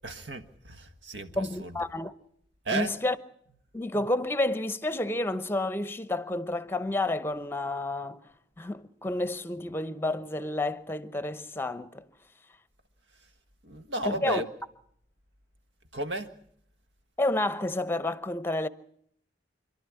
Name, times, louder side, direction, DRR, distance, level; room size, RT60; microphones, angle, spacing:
voice 1, 0.0-1.9 2.7-2.9 13.2-13.3 13.6-14.5 15.9-16.3, right 2 dB, 80° right, 1.6 m, -34 dB
voice 2, 1.4-2.1 2.7-3.1 3.7-8.2 8.6-12.1 14.0-14.4 17.2-18.7, left 2 dB, 15° left, 0.8 m, -30 dB
27.0 x 12.0 x 9.8 m
head